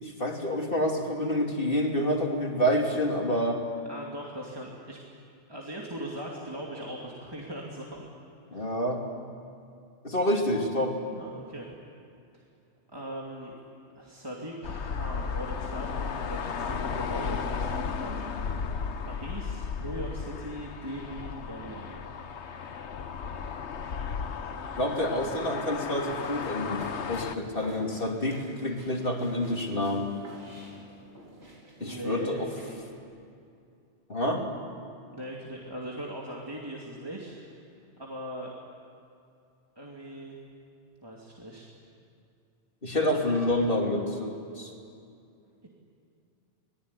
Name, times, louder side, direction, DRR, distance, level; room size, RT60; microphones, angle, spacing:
voice 1, 0.0-3.6 8.5-9.0 10.0-11.0 24.8-30.1 31.8-32.5 34.1-34.4 42.8-44.7, left 1 dB, 55° left, 1 dB, 3.1 m, -28 dB
voice 2, 3.9-5.0 5.5-8.1 8.5-8.7 11.1-11.7 12.3-12.4 12.9-13.5 14.0-18.3 19.0-22.0 25.2-25.4 31.8-32.4 35.1-37.6 38.0-38.5 39.8-40.4 41.0-41.7 42.8-43.5 45.6-45.7, right 1 dB, 20° right, -3 dB, 2.5 m, -40 dB
sound 1, 14.6-27.4, left 6 dB, 85° left, 1.3 m, -34 dB
sound 2, 25.6-33.0, right 1 dB, 65° right, 4.7 m, -49 dB
26.0 x 19.5 x 9.8 m, 2.5 s
omnidirectional pair, 1.1 m